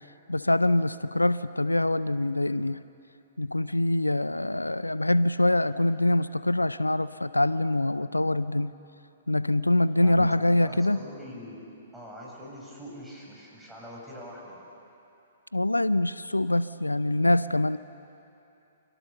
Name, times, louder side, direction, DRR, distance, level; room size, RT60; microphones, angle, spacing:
voice 1, 0.3-2.8 3.4-8.7 9.3-11.0 15.5-17.8, left 1 dB, 85° left, 16 dB, 0.6 m, -24 dB
voice 2, 10.0-11.7 11.9-14.7, equal, 5° right, -4 dB, 7.6 m, -43 dB
29.5 x 27.0 x 7.0 m, 2.8 s
figure-of-eight pair, 120°, 0 cm